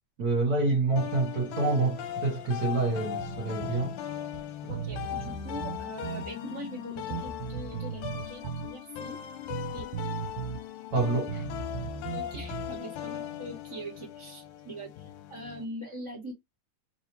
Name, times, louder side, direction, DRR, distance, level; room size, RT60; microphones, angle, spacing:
voice 1, 0.2-4.0 4.6-4.7 10.9-11.5, right 3 dB, 55° right, 1.0 m, -27 dB
sound 1, 1.0-15.7, left 11 dB, 85° left, 2.0 m, -39 dB
Bass guitar, 3.2-3.9 4.3-4.4 4.7-6.3 7.1-8.7 9.5-10.6 10.9-12.8, right 7 dB, 80° right, 2.1 m, -37 dB
voice 2, 4.7-9.2 9.7-9.9 12.1-16.3, right 1 dB, 15° right, 1.4 m, -42 dB
4.8 x 2.8 x 3.1 m
omnidirectional pair, 3.6 m